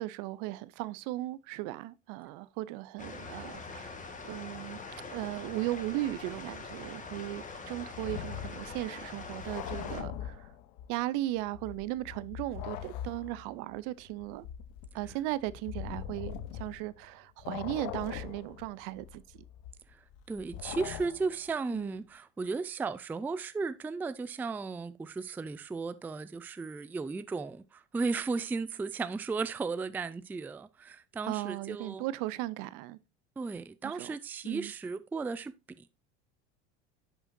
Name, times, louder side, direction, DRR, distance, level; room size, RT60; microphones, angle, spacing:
voice 1, 0.0-4.0 4.2-4.8 5.1-10.5 10.9-14.5 14.9-19.2 21.7-22.0 31.3-33.0 33.8-34.1 34.4-34.7, right 17 dB, 65° right, 0.6 m, -37 dB
sound 1, 3.0-10.0, left 4 dB, 20° left, 1.6 m, -44 dB
sound 2, 7.9-11.0 11.4-17.1 17.4-21.5, left 10 dB, 65° left, 0.9 m, -42 dB
voice 2, 20.3-32.0 33.4-36.0, right 4 dB, 5° right, 0.3 m, -35 dB
10.5 x 5.5 x 2.6 m
hypercardioid pair, 90°, 34 cm